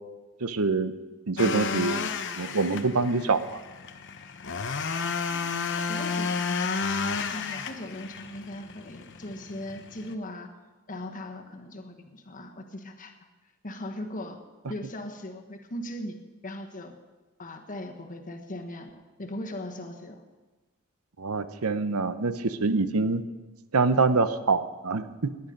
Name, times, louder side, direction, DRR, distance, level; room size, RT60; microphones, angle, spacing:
voice 1, 0.4-0.9 1.3-2.0 2.4-3.6 21.2-23.2 23.7-25.3, right 4 dB, 85° right, 12 dB, 0.8 m, -25 dB
sound 1, 1.4-10.1, left 5 dB, 55° left, 0.9 m, -32 dB
voice 2, 5.3-6.7 7.3-10.5 10.9-13.1 13.6-14.4 14.7-16.2 16.4-16.9 17.4-20.2, left 1 dB, 40° left, 4 dB, 1.5 m, -39 dB
19.0 x 10.5 x 5.3 m, 1.2 s
head